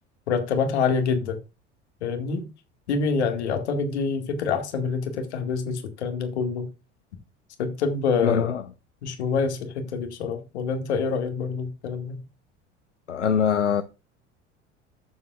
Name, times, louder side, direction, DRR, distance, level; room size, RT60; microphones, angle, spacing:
voice 1, 0.3-1.4 2.0-2.5 2.9-6.7 7.6-8.5 9.0-12.2, left 5 dB, 65° left, 2.1 m, -26 dB
voice 2, 8.2-8.6 13.1-13.8, left 7 dB, 85° left, 0.7 m, -22 dB
14.0 x 7.5 x 2.4 m
figure-of-eight pair, 70°, 35 cm